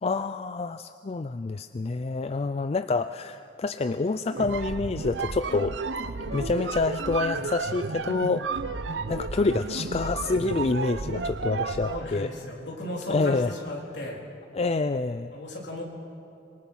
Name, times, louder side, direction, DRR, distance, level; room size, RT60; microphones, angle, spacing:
voice 1, 0.0-5.8 6.3-8.5 9.1-12.3 13.1-13.5 14.5-15.3, left 3 dB, 35° left, 11 dB, 0.4 m, -27 dB
sound 1, 4.3-12.1, right 3 dB, 70° right, 0.8 m, -32 dB
voice 2, 11.8-14.2 15.3-15.8, left 1 dB, 65° left, -1 dB, 3.9 m, -35 dB
25.5 x 22.5 x 5.6 m, 2.8 s
head